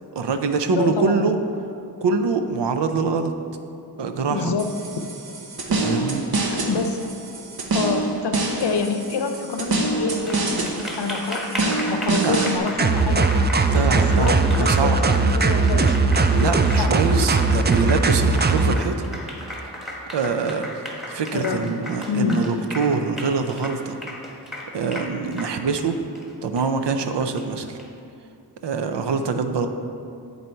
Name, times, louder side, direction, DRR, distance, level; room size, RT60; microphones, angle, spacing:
voice 1, 0.1-1.4 2.0-3.3 4.0-4.5 5.7-6.2 12.1-12.4 13.7-15.0 16.3-19.0 20.1-20.7 21.1-24.0 24.7-26.0 26.4-27.8 28.6-29.7, right 4 dB, 85° right, 7 dB, 0.6 m, -24 dB
voice 2, 0.7-1.2 4.3-5.2 6.4-7.0 7.7-13.3 13.9-16.0 16.8-17.0 21.3-21.7 22.1-22.6, left 4 dB, 75° left, 6 dB, 0.6 m, -27 dB
sound 1, 4.6-12.6, right 2 dB, 60° right, 0.8 m, -26 dB
Applause, 10.1-27.8, equal, ahead, 1.2 m, -35 dB
sound 2, 12.8-18.8, right 3 dB, 25° right, 0.3 m, -19 dB
9.5 x 4.1 x 4.4 m, 2.5 s
wide cardioid pair, 70°, 41 cm